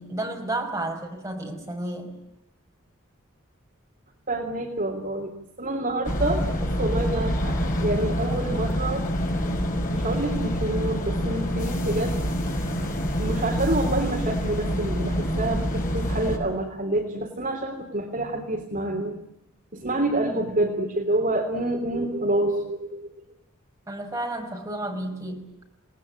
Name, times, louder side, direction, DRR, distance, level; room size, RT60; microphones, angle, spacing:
voice 1, 0.0-2.1 20.3-20.6 23.9-25.5, right 1 dB, 15° right, 2 dB, 5.8 m, -32 dB
voice 2, 4.3-9.1 9.9-12.2 13.2-19.2 19.7-23.1, right 1 dB, 40° right, 4 dB, 3.2 m, -27 dB
sound 1, 6.0-16.4, equal, 40° left, 6.0 m, -26 dB
29.5 x 19.5 x 8.8 m, 0.83 s
head